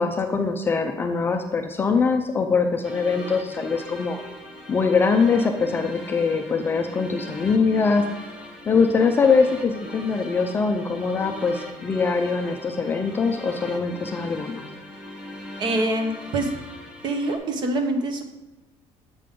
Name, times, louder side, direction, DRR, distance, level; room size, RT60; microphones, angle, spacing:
voice 1, 0.0-4.2 4.7-8.0 8.7-14.6, left 5 dB, 20° left, 5 dB, 0.3 m, -22 dB
sound 1, 2.8-17.4, left 1 dB, 10° right, 0.9 m, -40 dB
voice 2, 15.6-16.5 17.0-18.2, right 2 dB, 40° right, 6 dB, 0.8 m, -25 dB
7.5 x 5.1 x 3.6 m, 1.0 s
cardioid pair, 170°, 12 cm